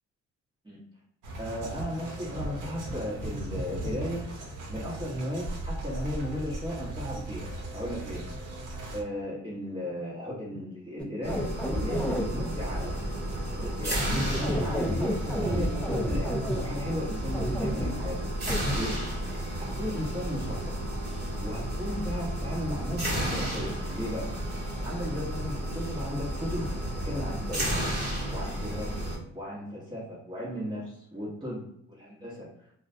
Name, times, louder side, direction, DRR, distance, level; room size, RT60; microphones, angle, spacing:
sound 1, 1.2-9.0, right 2 dB, 85° right, 0.7 m, -37 dB
voice 1, 1.4-4.3 4.7-8.2 8.9-11.5 11.8-13.0 13.5-18.2 18.7-18.9 19.6-20.7 21.4-24.3 24.8-26.7 27.0-27.8 28.3-29.0 29.3-31.6 31.9-32.5, equal, 15° right, -7 dB, 0.9 m, -35 dB
sound 2, 11.0-12.3 14.3-16.6 17.3-17.9 18.5-18.6, equal, 5° left, 0.3 m, -30 dB
sound 3, 11.2-29.2, right 1 dB, 35° right, 1.2 m, -32 dB
2.4 x 2.1 x 2.5 m, 0.73 s
cardioid pair, 90°, 30 cm